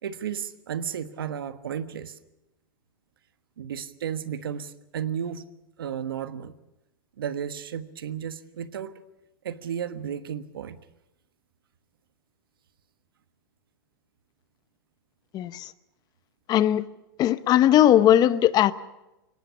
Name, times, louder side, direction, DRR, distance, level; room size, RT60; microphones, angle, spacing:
voice 1, 0.0-2.1 3.6-5.4 5.8-6.5 7.2-8.9 9.4-10.8, right 8 dB, 85° right, 11 dB, 1.3 m, -33 dB
voice 2, 15.3-15.7 16.5-16.8 17.2-18.7, left 11 dB, 35° left, 15 dB, 0.8 m, -19 dB
23.5 x 18.0 x 7.1 m, 0.97 s
hypercardioid pair, 115°, 12 cm